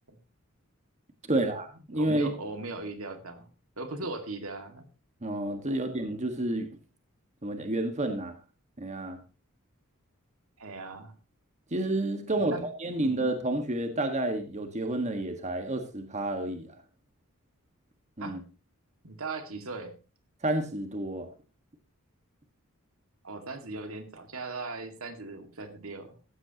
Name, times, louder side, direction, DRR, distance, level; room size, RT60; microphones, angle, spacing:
voice 1, 1.3-2.3 5.2-6.7 7.4-8.4 8.8-9.2 11.7-16.8 18.2-18.4 20.4-21.3, right 1 dB, 35° right, 6 dB, 1.6 m, -30 dB
voice 2, 1.9-3.5 3.8-4.9 5.7-5.8 10.6-11.2 12.3-12.7 13.0-13.2 18.2-18.4 19.0-20.0 23.2-26.2, right 3 dB, 70° right, 7 dB, 2.1 m, -39 dB
16.0 x 13.5 x 3.0 m, 0.33 s
head